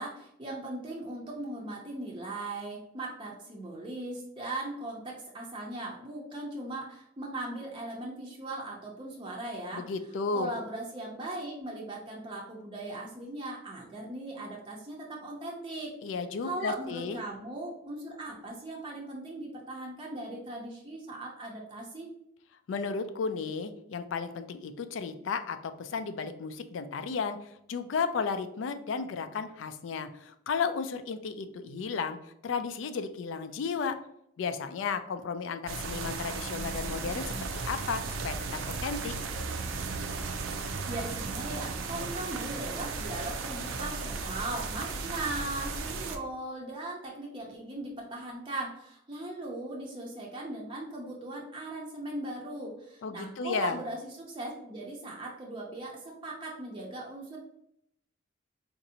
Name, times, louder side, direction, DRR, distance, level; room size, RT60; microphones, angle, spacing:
voice 1, 0.0-9.8 10.3-15.9 16.4-22.1 40.9-57.4, right 2 dB, 25° right, -3 dB, 0.5 m, -39 dB
voice 2, 9.7-10.5 16.0-17.2 22.7-27.4 27.7-32.2 32.4-34.0 34.4-38.3 38.8-39.1 53.0-53.8, left 5 dB, 70° left, 10 dB, 0.3 m, -33 dB
sound 1, 35.7-46.2, right 4 dB, 80° right, 0.4 m, -35 dB
4.0 x 2.6 x 2.7 m, 0.75 s
head